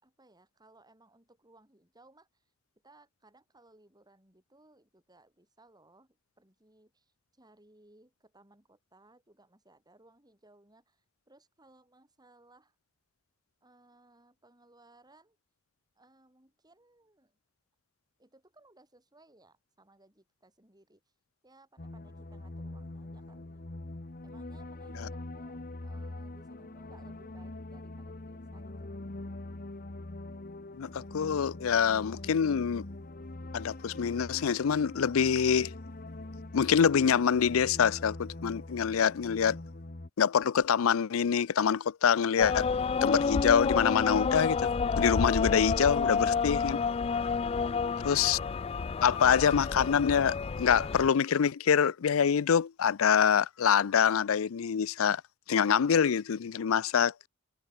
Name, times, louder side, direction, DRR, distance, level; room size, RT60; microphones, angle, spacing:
voice 1, 0.0-2.5 2.8-12.7 13.6-15.4 15.9-17.4 18.2-21.0 21.4-23.6 24.2-28.9 47.4-48.4, right 2 dB, 20° right, 6.6 m, -62 dB
sound 1, 21.8-40.1, left 2 dB, 45° left, 1.2 m, -43 dB
voice 2, 30.7-32.8 33.5-35.7 36.5-39.6 40.2-42.7 43.0-44.7 45.0-46.8 48.0-48.4 49.0-55.2 55.5-57.1, left 7 dB, 90° left, 0.5 m, -25 dB
sound 2, 42.4-51.1, left 5 dB, 30° left, 0.4 m, -30 dB
head